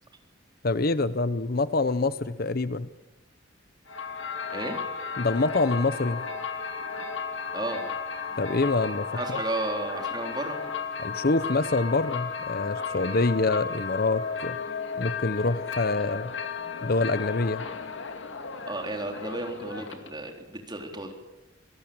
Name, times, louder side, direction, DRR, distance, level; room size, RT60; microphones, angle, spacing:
voice 1, 0.6-2.9 5.2-6.2 8.4-9.4 11.0-14.6 15.0-16.3 16.8-17.6, left 3 dB, 50° left, 14 dB, 0.8 m, -26 dB
sound 1, 3.9-20.3, left 5 dB, 75° left, 2.3 m, -34 dB
voice 2, 7.5-7.9 9.1-10.6 18.7-21.1, right 2 dB, 20° right, 3 dB, 3.9 m, -33 dB
26.0 x 18.5 x 8.8 m, 1.0 s
head